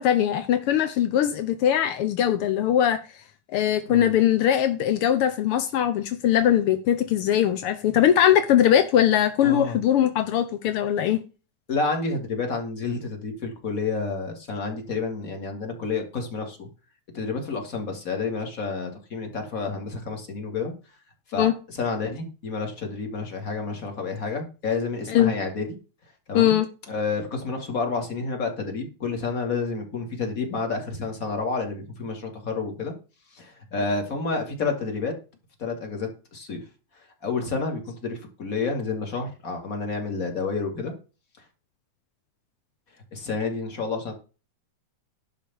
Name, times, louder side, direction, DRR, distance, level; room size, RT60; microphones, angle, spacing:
voice 1, 0.0-3.0 3.5-11.2 21.3-21.5 25.1-25.3 26.3-26.7, left 10 dB, 80° left, 1.3 m, -21 dB
voice 2, 9.4-9.8 11.7-16.7 17.1-20.7 21.3-25.7 26.3-26.6 26.9-32.9 33.3-35.1 35.6-36.6 37.2-40.9 43.1-44.1, left 4 dB, 30° left, 2.5 m, -29 dB
11.0 x 5.0 x 7.0 m
omnidirectional pair, 3.6 m